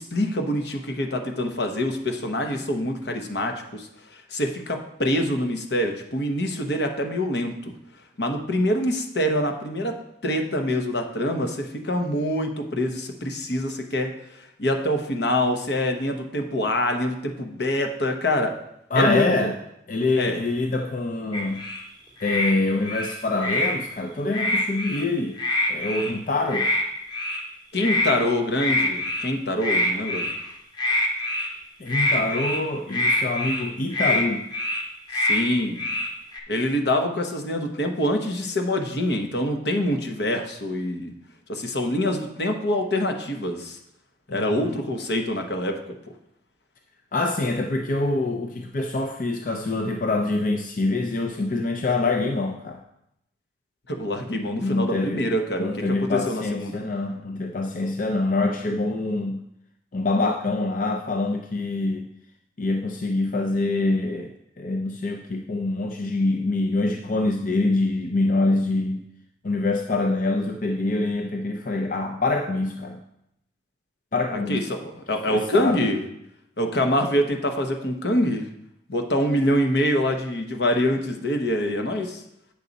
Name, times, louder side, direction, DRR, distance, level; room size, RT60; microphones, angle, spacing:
voice 1, 0.0-7.7 8.2-18.6 18.9-19.5 20.2-20.4 27.7-30.3 35.1-35.8 36.5-41.1 41.5-43.8 44.3-46.0 53.9-56.8 74.3-76.0 76.6-78.5 78.9-82.2, left 1 dB, 70° left, 5 dB, 1.0 m, -25 dB
voice 2, 18.9-19.6 19.9-21.7 22.2-25.4 25.7-26.7 31.8-34.5 44.3-44.8 47.1-52.8 54.6-55.3 55.6-59.4 59.9-62.1 62.6-64.3 64.6-69.1 69.4-73.0 74.1-74.7 75.3-75.9, left 2 dB, 50° left, 3 dB, 0.5 m, -25 dB
sound 1, 21.3-21.8 22.2-22.5 22.8-23.7 24.3-25.0 25.4-26.1 26.5-26.8 27.1-27.4 27.8-28.1 28.6-29.3 29.6-30.4 30.8-31.5 31.9-32.6 32.9-33.6 33.9-34.2 34.5-34.8 35.1-35.4 35.8-36.4, left 1 dB, 25° left, 1.1 m, -25 dB
8.5 x 6.4 x 4.0 m, 0.81 s
head